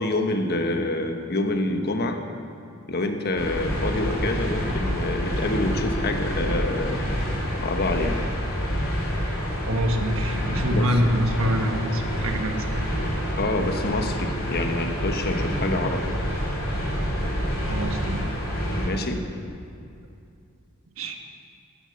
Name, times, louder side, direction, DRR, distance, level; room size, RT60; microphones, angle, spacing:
voice 1, 0.0-2.2 2.9-7.0 7.6-8.2 10.7-11.0 13.3-16.1 18.7-19.2, left 2 dB, 50° left, 5 dB, 1.2 m, -27 dB
sound 1, 3.4-18.9, equal, 70° left, 3.9 m, -27 dB
voice 2, 9.7-12.7 17.7-18.3 21.0-21.2, equal, 70° right, 4 dB, 1.4 m, -25 dB
14.5 x 10.0 x 6.9 m, 2.5 s
head